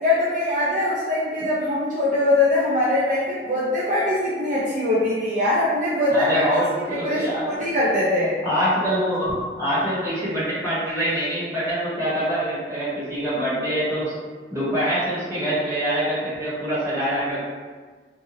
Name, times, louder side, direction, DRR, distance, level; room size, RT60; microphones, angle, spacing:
voice 1, 0.0-6.4 6.9-8.4, left 1 dB, 45° right, -8 dB, 0.4 m, -22 dB
voice 2, 6.1-7.5 8.4-14.1 14.5-17.4, equal, 15° right, -12 dB, 1.3 m, -25 dB
2.8 x 2.4 x 2.7 m, 1.4 s
head